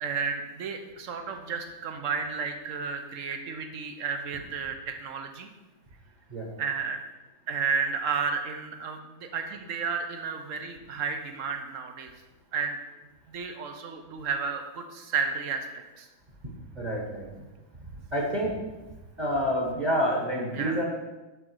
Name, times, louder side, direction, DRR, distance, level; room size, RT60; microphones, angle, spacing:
voice 1, 0.0-5.5 6.6-7.0 7.5-12.1 12.5-12.8 13.3-15.7 16.0-16.1 20.5-20.8, right 5 dB, 70° right, 5 dB, 1.0 m, -32 dB
voice 2, 16.7-17.4 17.8-18.6 19.2-20.8, equal, 35° right, -2 dB, 1.2 m, -28 dB
7.0 x 3.7 x 6.1 m, 1.1 s
omnidirectional pair, 1.5 m